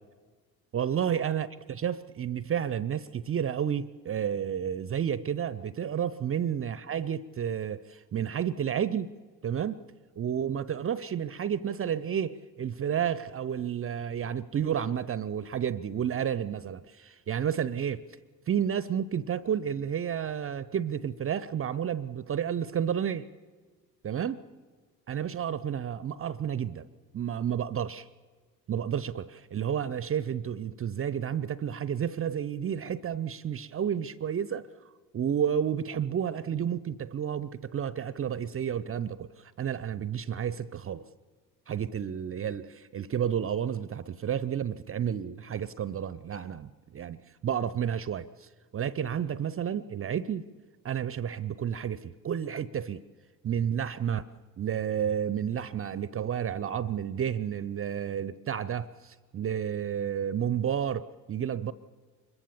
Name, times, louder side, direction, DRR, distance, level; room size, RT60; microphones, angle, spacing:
voice 1, 0.7-9.1 9.4-9.8 10.2-18.0 18.5-23.3 24.0-24.4 25.1-26.9 27.1-28.1 28.7-34.6 35.1-41.0 41.7-50.4 50.8-53.0 53.4-54.3 54.6-61.7, right 8 dB, 30° right, 18 dB, 0.7 m, -31 dB
25.5 x 22.5 x 7.2 m, 1.4 s
figure-of-eight pair, 50°, 48 cm